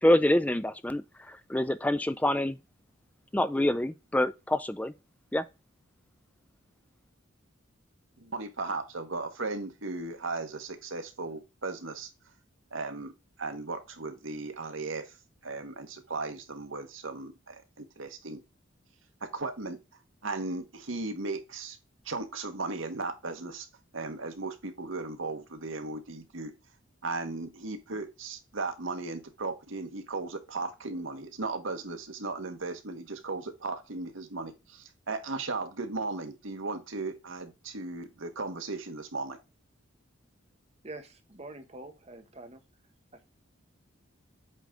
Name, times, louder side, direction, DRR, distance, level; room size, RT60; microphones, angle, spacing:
voice 1, 0.0-2.6 3.3-4.9 5.3-5.4, left 1 dB, 5° left, 0.4 m, -26 dB
voice 2, 8.2-12.1 12.7-13.1 13.4-15.1 15.4-18.4 19.2-19.8 20.2-21.8 22.0-23.7 23.9-26.5 27.0-39.4, right 3 dB, 80° right, 1.3 m, -36 dB
voice 3, 40.8-42.6, right 2 dB, 30° right, 1.0 m, -45 dB
8.2 x 3.5 x 3.7 m
head